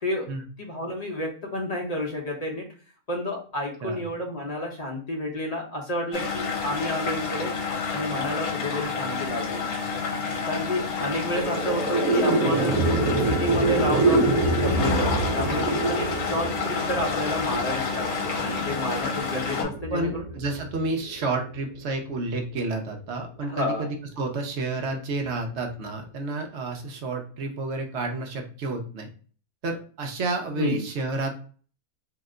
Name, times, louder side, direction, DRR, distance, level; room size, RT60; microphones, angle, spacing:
voice 1, 0.0-0.3 0.6-2.7 3.1-7.5 7.9-9.6 10.5-12.8 13.3-20.2 23.5-23.8 30.6-30.8, left 1 dB, 35° left, -1 dB, 0.6 m, -30 dB
sound 1, 6.1-19.6, left 5 dB, 75° left, 1.1 m, -29 dB
sound 2, 11.0-21.5, right 2 dB, 80° right, 1.0 m, -26 dB
voice 2, 19.9-29.1 29.6-31.4, right 2 dB, 60° right, 3 dB, 0.8 m, -30 dB
2.8 x 2.1 x 3.5 m, 0.41 s
omnidirectional pair, 1.6 m